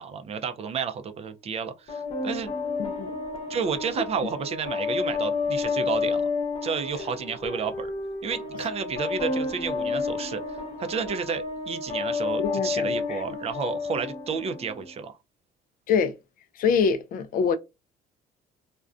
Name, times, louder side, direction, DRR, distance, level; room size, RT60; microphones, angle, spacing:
voice 1, 0.0-2.6 3.5-6.2 6.6-7.9 8.2-15.2, right 6 dB, 40° right, 0.4 m, -31 dB
sound 1, 1.9-14.9, left 4 dB, 35° left, 0.9 m, -30 dB
voice 2, 2.8-3.1 12.4-13.4 15.9-16.2 16.6-17.6, left 6 dB, 55° left, 0.4 m, -25 dB
2.4 x 2.1 x 2.4 m
cardioid pair, 110°, 17 cm